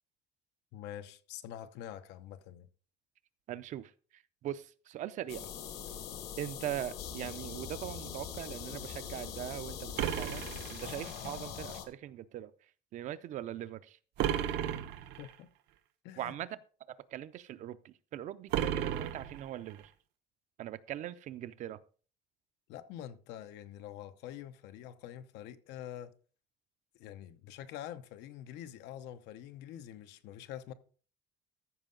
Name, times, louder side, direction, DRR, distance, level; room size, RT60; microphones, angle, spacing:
voice 1, 0.7-2.7 15.2-15.5 16.0-16.3 22.7-26.1 26.9-30.7, left 11 dB, 90° left, 0.9 m, -46 dB
voice 2, 3.5-5.5 6.4-10.5 10.7-14.0 16.2-16.6 17.1-19.9 20.6-21.8, right 12 dB, 45° right, 0.5 m, -41 dB
sound 1, 5.3-11.8, left 8 dB, 65° left, 1.4 m, -42 dB
sound 2, 10.0-11.3 14.2-15.3 18.5-19.8, right 10 dB, 80° right, 0.9 m, -34 dB
14.0 x 5.5 x 3.8 m
cardioid pair, 175°, 17 cm